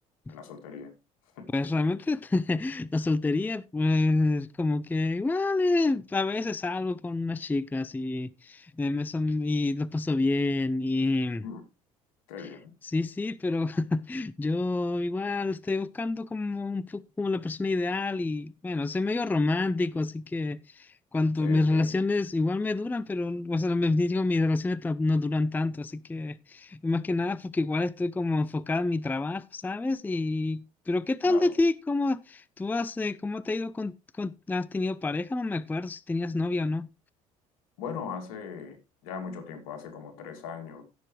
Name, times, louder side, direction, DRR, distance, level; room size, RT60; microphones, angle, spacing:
voice 1, 0.3-0.9 1.4-1.5 11.4-11.6 12.3-12.7 21.4-21.9 31.2-31.5 37.8-38.8 39.0-40.8, left 6 dB, 75° left, 2.4 m, -39 dB
voice 2, 1.5-11.4 12.8-36.9, left 2 dB, 10° left, 0.4 m, -28 dB
16.5 x 6.7 x 3.2 m
hypercardioid pair, 65°, 18 cm